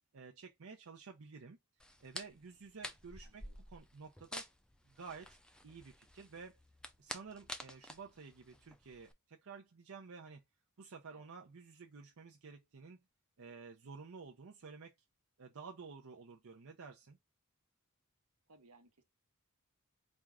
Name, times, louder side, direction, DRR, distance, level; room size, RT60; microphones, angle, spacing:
voice 1, 0.1-1.6 2.0-4.5 4.8-5.4 5.6-6.6 7.0-10.4 10.8-13.0 13.4-14.9 15.4-17.2, right 5 dB, 70° right, 0.6 m, -52 dB
sound 1, 1.8-9.1, left 1 dB, 5° left, 0.4 m, -50 dB
voice 2, 3.2-3.6 11.1-11.3 18.5-19.0, right 2 dB, 85° right, 1.0 m, -64 dB
4.4 x 2.4 x 3.5 m
head